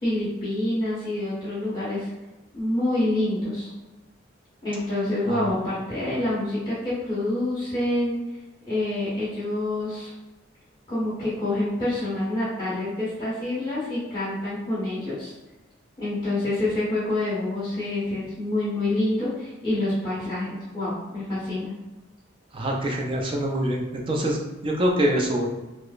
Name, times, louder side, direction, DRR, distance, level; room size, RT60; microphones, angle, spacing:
voice 1, 0.0-2.1 2.5-3.7 4.6-8.2 8.7-10.1 10.9-15.3 16.0-21.7, left 1 dB, 20° left, -11 dB, 1.3 m, -27 dB
voice 2, 22.5-25.5, equal, 25° right, 0 dB, 0.5 m, -25 dB
4.8 x 2.1 x 2.5 m, 1.1 s
head